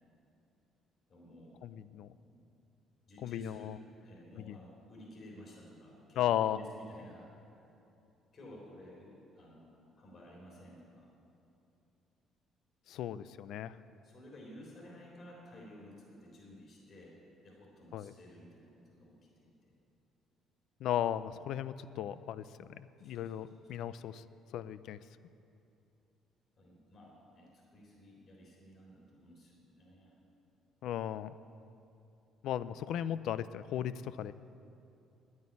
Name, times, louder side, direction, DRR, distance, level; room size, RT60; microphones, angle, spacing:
voice 1, 1.1-1.6 2.2-2.4 3.1-3.7 4.0-7.6 8.3-11.1 14.0-19.7 23.0-23.5 23.8-23.9 26.6-30.1, equal, 40° left, -3 dB, 3.9 m, -54 dB
voice 2, 1.6-2.1 3.2-3.8 4.4-4.6 6.2-6.6 12.9-13.8 17.9-18.1 20.8-24.2 24.5-25.0 30.8-31.3 32.4-34.3, left 11 dB, 70° left, 15 dB, 0.4 m, -36 dB
10.5 x 9.5 x 9.6 m, 2.8 s
cardioid pair, 140°, 0 cm